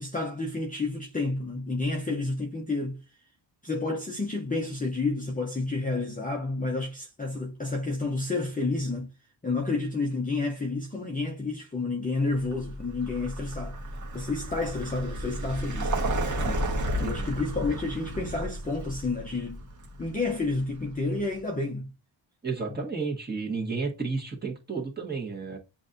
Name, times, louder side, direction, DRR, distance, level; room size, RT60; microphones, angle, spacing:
voice 1, 0.0-3.0 3.6-9.1 9.4-13.8 14.1-16.7 17.0-19.6 20.0-21.9 22.7-22.8, left 3 dB, 15° left, 0.7 m, -30 dB
Vehicle, 12.4-21.2, right 1 dB, 40° right, 1.3 m, -33 dB
voice 2, 17.0-17.3 22.4-25.6, right 4 dB, 20° right, 1.6 m, -32 dB
7.5 x 2.7 x 2.6 m
cardioid pair, 100°, 47 cm